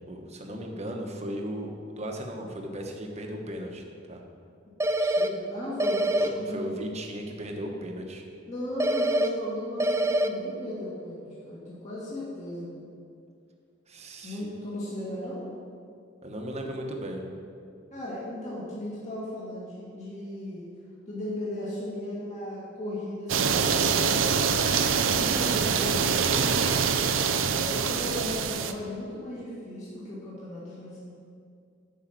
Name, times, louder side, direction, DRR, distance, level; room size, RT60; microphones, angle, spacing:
voice 1, 0.1-3.8 4.1-4.2 6.2-8.2 13.9-14.5 16.2-17.2, equal, 35° right, 2 dB, 1.1 m, -36 dB
sound 1, 4.8-5.3 5.8-6.3 8.8-9.3 9.8-10.3, right 1 dB, 15° right, 0.4 m, -24 dB
voice 2, 4.9-6.7 8.5-12.7 14.2-15.4 17.9-20.7 21.1-24.4 24.9-26.9 27.2-31.0, left 1 dB, 40° left, -8 dB, 2.2 m, -36 dB
sound 2, 23.3-28.7, right 6 dB, 90° right, 0.6 m, -25 dB
9.1 x 5.7 x 7.5 m, 2.3 s
head